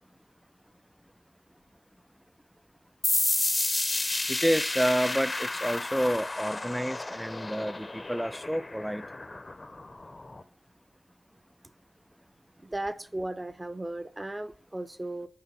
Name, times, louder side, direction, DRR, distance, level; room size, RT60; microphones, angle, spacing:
sound 1, 3.0-10.4, left 2 dB, 35° left, 0.7 m, -31 dB
voice 1, 4.3-9.0, equal, 5° right, 0.3 m, -29 dB
voice 2, 12.6-15.3, right 1 dB, 25° right, 0.8 m, -36 dB
6.8 x 5.0 x 5.4 m
cardioid pair, 60°, 0 cm